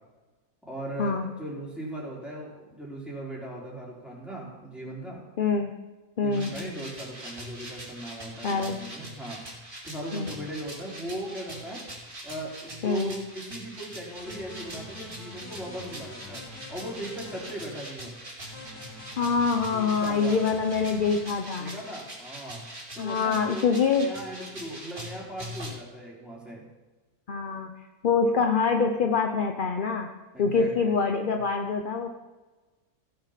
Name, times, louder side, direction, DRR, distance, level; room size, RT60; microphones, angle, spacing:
voice 1, 0.6-5.2 6.2-9.4 9.8-11.8 12.2-16.4 16.7-18.1 19.7-20.4 21.6-22.6 22.9-26.6 30.3-31.0, right 1 dB, ahead, -5 dB, 3.8 m, -38 dB
voice 2, 5.4-5.7 6.2-6.5 8.4-8.8 10.1-10.3 12.8-13.1 19.2-21.8 23.0-24.1 27.3-27.7 28.0-30.1 30.4-32.1, left 5 dB, 50° left, 4 dB, 0.7 m, -25 dB
sound 1, 6.3-25.7, right 1 dB, 50° right, 3.5 m, -43 dB
sound 2, 14.1-17.5 18.4-21.2, left 2 dB, 80° left, 2.2 m, -45 dB
16.5 x 6.6 x 5.8 m, 1.2 s
omnidirectional pair, 1.6 m